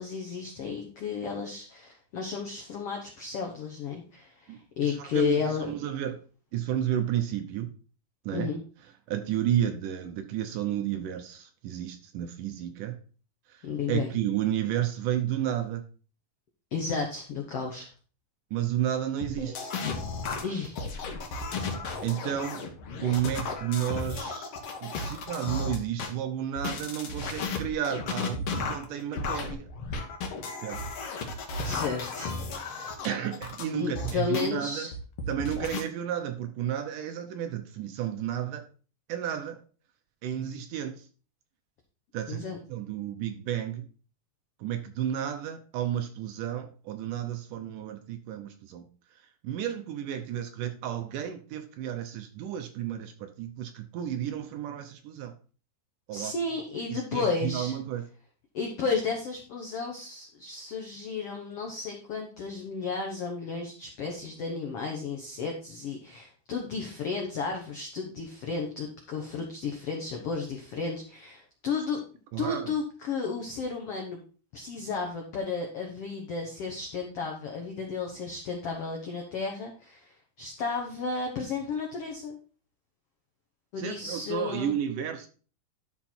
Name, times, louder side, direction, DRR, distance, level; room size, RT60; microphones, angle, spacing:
voice 1, 0.0-5.7 8.3-8.6 13.6-14.1 16.7-17.9 20.4-20.8 31.6-32.4 33.7-34.9 42.3-42.6 56.1-57.7 58.5-72.0 72.4-74.2 74.5-82.4 83.7-84.7, left 5 dB, 80° left, 1.3 m, -33 dB
voice 2, 4.5-6.2 6.5-7.7 8.3-8.5 9.1-13.0 13.5-15.9 18.5-19.7 22.0-22.7 23.0-24.5 24.8-29.7 30.6-30.8 33.0-34.9 35.3-38.7 39.1-39.6 40.2-41.1 42.1-43.9 44.6-48.9 49.2-55.3 56.1-56.3 56.9-58.0 72.3-72.7 83.8-85.3, right 10 dB, 75° right, 2.0 m, -32 dB
sound 1, 19.2-26.1 26.6-34.5 34.9-35.8, left 3 dB, 60° left, 1.7 m, -34 dB
12.0 x 4.4 x 4.3 m
omnidirectional pair, 4.4 m